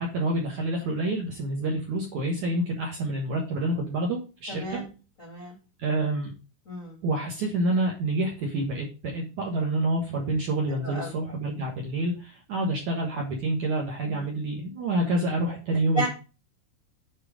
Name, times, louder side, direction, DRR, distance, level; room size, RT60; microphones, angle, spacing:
voice 1, 0.0-4.8 5.8-6.3 7.0-16.1, right 2 dB, 65° right, -1 dB, 1.9 m, -28 dB
voice 2, 4.5-4.9 5.2-5.5 6.6-7.0 10.8-11.1 14.0-14.4 15.9-16.1, right 1 dB, 75° left, 0 dB, 0.7 m, -33 dB
8.9 x 4.6 x 5.0 m, 0.32 s
omnidirectional pair, 5.5 m